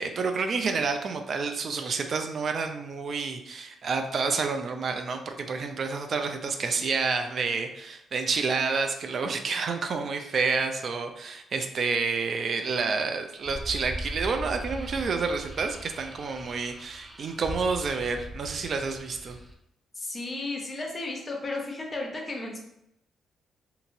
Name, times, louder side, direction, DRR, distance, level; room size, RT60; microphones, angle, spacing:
voice 1, 0.0-19.4, right 4 dB, 55° right, 6 dB, 0.3 m, -29 dB
sound 1, 13.4-19.5, right 1 dB, 15° right, 0.6 m, -40 dB
voice 2, 19.9-22.6, left 2 dB, 40° left, 1 dB, 0.8 m, -34 dB
2.8 x 2.6 x 2.6 m, 0.79 s
supercardioid pair, 60°, 0 cm